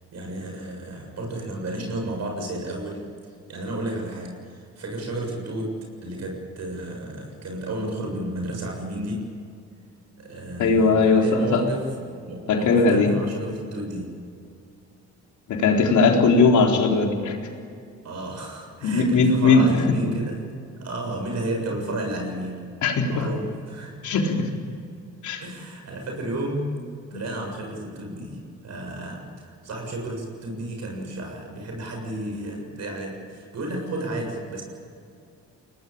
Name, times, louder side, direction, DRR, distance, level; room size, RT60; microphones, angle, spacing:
voice 1, 0.1-3.1 3.5-5.8 6.0-9.3 10.2-14.1 18.0-20.5 20.8-22.7 23.1-24.1 25.4-26.8 27.1-34.6, right 1 dB, 60° right, 2 dB, 7.0 m, -32 dB
voice 2, 10.6-11.6 12.5-13.1 15.5-17.4 18.8-19.6 22.8-23.3 24.0-24.5 25.2-25.4 27.1-27.2, left 4 dB, 75° left, 1 dB, 4.0 m, -19 dB
23.5 x 18.5 x 8.7 m, 2.3 s
cardioid pair, 90°, 30 cm